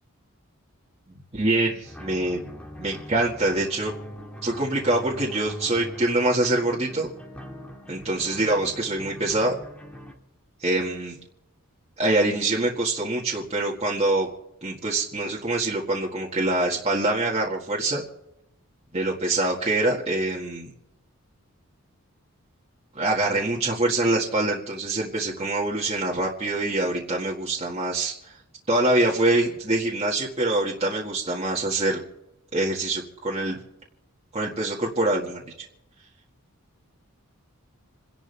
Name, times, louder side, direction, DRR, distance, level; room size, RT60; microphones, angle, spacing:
voice 1, 1.3-2.4 2.8-3.9 4.4-7.1 7.9-9.6 10.6-11.2 12.0-14.3 14.6-18.0 18.9-20.7 22.9-28.3 28.7-32.0 32.5-33.6 34.3-35.4, right 2 dB, 30° right, -3 dB, 1.8 m, -25 dB
sound 1, 1.8-10.1, equal, 5° left, 1.8 m, -42 dB
28.5 x 11.0 x 3.4 m, 0.87 s
head